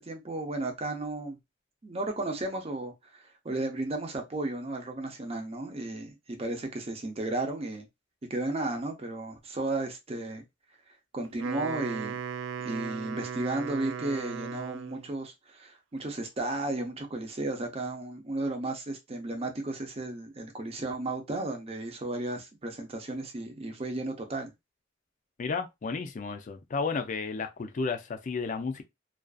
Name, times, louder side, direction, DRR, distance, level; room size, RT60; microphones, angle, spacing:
voice 1, 0.0-1.4 1.8-7.9 8.3-10.4 11.1-12.2 12.6-24.5, right 2 dB, 30° right, 0.6 m, -34 dB
Wind instrument woodwind instrument, 11.2-15.1, right 7 dB, 85° right, 0.3 m, -37 dB
voice 2, 25.4-28.8, left 4 dB, 45° left, 0.4 m, -32 dB
2.4 x 2.3 x 2.3 m
head